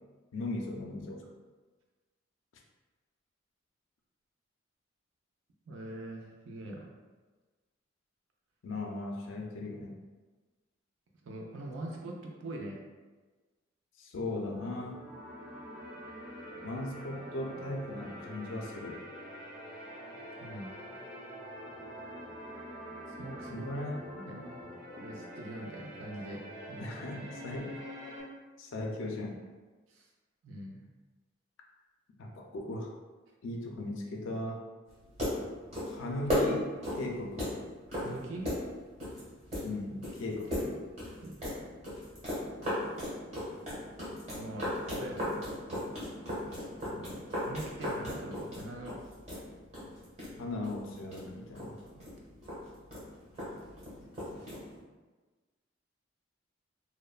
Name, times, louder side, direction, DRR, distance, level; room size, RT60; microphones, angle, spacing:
voice 1, 0.3-1.2 8.6-10.0 14.0-15.0 16.6-19.0 23.5-24.8 26.8-27.7 28.6-29.4 32.2-32.9 33.4-34.6 35.9-37.5 39.6-40.7 46.9-47.2 50.4-51.8, left 2 dB, 75° left, 0 dB, 0.4 m, -38 dB
voice 2, 5.7-6.9 11.2-12.8 20.4-20.8 23.2-23.7 24.1-24.6 24.9-26.8 29.9-30.1 30.4-30.9 37.9-38.5 41.2-41.4 44.4-45.5 47.5-49.0 51.8-52.1, right 1 dB, 75° right, -1 dB, 0.4 m, -43 dB
sound 1, 14.5-28.2, equal, 5° right, 0.5 m, -45 dB
sound 2, 34.9-54.8, left 1 dB, 30° right, 1.0 m, -37 dB
2.9 x 2.1 x 2.3 m, 1.3 s
head